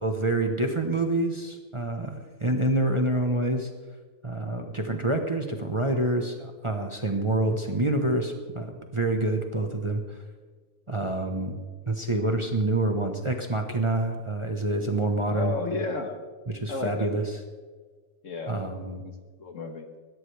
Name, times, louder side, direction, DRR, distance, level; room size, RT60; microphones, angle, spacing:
voice 1, 0.0-3.7 4.2-10.0 10.9-11.6 11.9-15.5 16.5-17.2 18.5-19.0, right 2 dB, 20° right, 4 dB, 1.1 m, -27 dB
voice 2, 15.3-16.2 16.7-17.3 18.2-18.6 19.0-19.1 19.4-19.9, left 3 dB, 60° left, 6 dB, 1.7 m, -32 dB
sound 1, 15.3-15.6, right 2 dB, 80° right, 4.4 m, -51 dB
20.5 x 16.5 x 3.4 m, 1.4 s
omnidirectional pair, 1.5 m